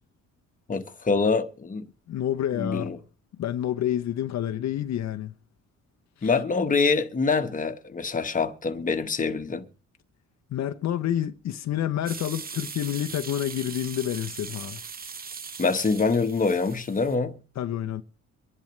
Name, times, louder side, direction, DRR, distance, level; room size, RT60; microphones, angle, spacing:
voice 1, 0.7-1.9 2.5-3.0 6.2-9.7 15.6-17.4, left 4 dB, 25° left, 1.2 m, -25 dB
voice 2, 2.1-2.9 3.4-5.3 6.2-6.3 10.5-14.8 17.6-18.0, left 11 dB, 60° left, 0.7 m, -28 dB
sound 1, 12.1-17.2, right 5 dB, 30° right, 0.8 m, -39 dB
24.0 x 10.5 x 3.2 m
cardioid pair, 90°, 30 cm